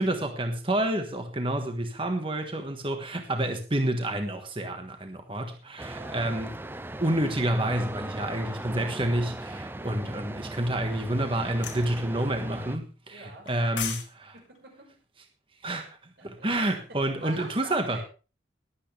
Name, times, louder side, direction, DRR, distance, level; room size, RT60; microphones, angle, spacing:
voice 1, 0.0-6.5 7.0-14.0 15.6-15.9 16.2-18.0, right 1 dB, 30° right, 1.6 m, -29 dB
sound 1, 5.8-12.8, right 1 dB, 10° right, 0.6 m, -38 dB
voice 2, 5.9-6.4 13.1-13.9 14.3-15.0 16.2-18.0, right 2 dB, 70° right, 5.2 m, -46 dB
sound 2, 11.6-11.9 13.5-14.1 14.4-14.6, left 8 dB, 90° left, 2.5 m, -33 dB
21.0 x 8.7 x 3.5 m
head